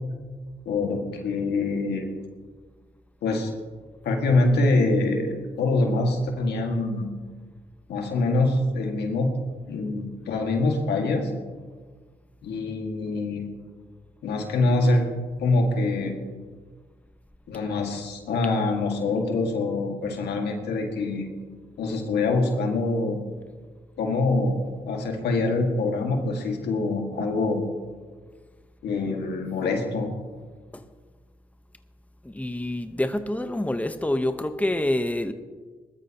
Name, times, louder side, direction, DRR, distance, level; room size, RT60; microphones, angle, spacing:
voice 1, 0.7-2.1 3.2-3.5 4.0-7.1 7.9-9.3 9.7-11.3 12.4-13.5 14.2-15.1 15.4-16.1 17.5-21.3 21.8-23.2 24.0-24.6 24.9-27.6 28.8-30.1, left 2 dB, 90° left, 2 dB, 1.9 m, -24 dB
voice 2, 32.3-35.3, left 1 dB, 10° left, 9 dB, 1.0 m, -26 dB
20.0 x 13.0 x 2.9 m, 1.5 s
supercardioid pair, 45°, 17 cm